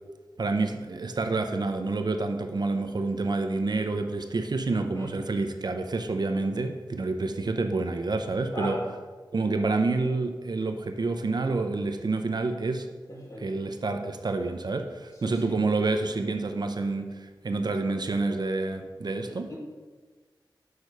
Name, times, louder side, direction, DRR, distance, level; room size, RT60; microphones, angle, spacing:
voice 1, 0.4-8.8 9.3-12.9 13.4-19.5, right 3 dB, 55° right, 6 dB, 0.5 m, -28 dB
voice 2, 4.7-5.1 8.5-8.8 13.1-13.5 15.3-15.5 19.2-19.6, equal, 40° left, -3 dB, 1.7 m, -38 dB
6.4 x 4.7 x 5.3 m, 1.4 s
wide cardioid pair, 85°, 8 cm